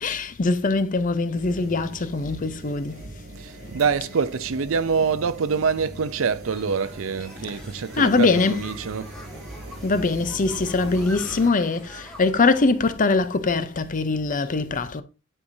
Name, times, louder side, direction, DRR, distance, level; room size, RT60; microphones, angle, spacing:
voice 1, 0.0-3.0 8.0-8.6 9.8-15.0, left 3 dB, 40° left, 0.6 m, -22 dB
sound 1, 1.3-11.5, right 1 dB, 35° right, 4.0 m, -40 dB
voice 2, 3.4-9.2, right 5 dB, 75° right, 0.5 m, -25 dB
sound 2, 6.4-12.4, equal, 5° left, 1.6 m, -45 dB
9.8 x 4.8 x 2.7 m
head